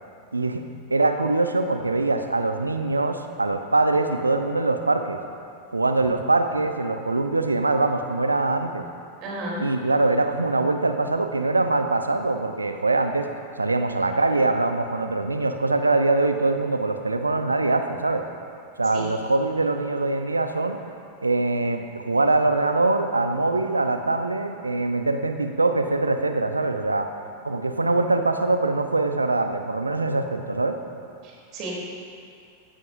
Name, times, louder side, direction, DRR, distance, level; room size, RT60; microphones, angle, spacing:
voice 1, 0.3-0.6 0.9-5.2 5.7-8.8 9.6-13.3 13.6-18.2 18.8-20.8 21.2-27.1 27.4-30.8, right 2 dB, 80° right, 7 dB, 0.8 m, -23 dB
voice 2, 9.2-9.6 18.9-19.1 31.2-31.7, right 1 dB, 40° right, -3 dB, 3.4 m, -33 dB
16.0 x 15.5 x 2.7 m, 2.4 s
figure-of-eight pair, 90°, 0 cm